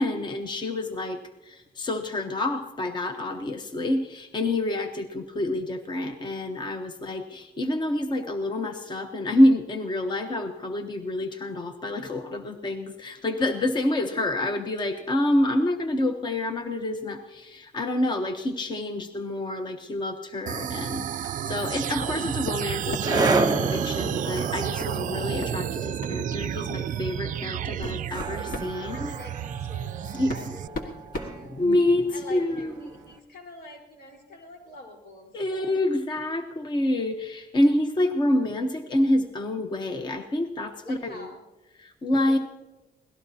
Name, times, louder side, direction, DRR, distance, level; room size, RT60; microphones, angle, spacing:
voice 1, 0.0-29.1 30.1-30.6 31.5-32.7 35.3-41.3 41.8-42.4, left 1 dB, 25° left, 6 dB, 0.9 m, -27 dB
sound 1, 20.5-30.7, right 10 dB, 50° right, 0.4 m, -31 dB
sound 2, 21.8-33.0, right 3 dB, 25° right, 0.9 m, -32 dB
sound 3, 22.0-22.2 22.5-23.3 24.8-25.0 25.4-25.5 26.0-26.2 27.0-27.1 27.6-28.8 29.8-29.9 30.3-32.0, left 2 dB, 55° left, 1.7 m, -36 dB
voice 2, 28.8-31.6 32.1-35.8 40.8-41.5 42.1-42.4, left 2 dB, 85° left, 0 dB, 4.1 m, -46 dB
24.5 x 18.0 x 2.8 m, 1.1 s
wide cardioid pair, 165°, 17 cm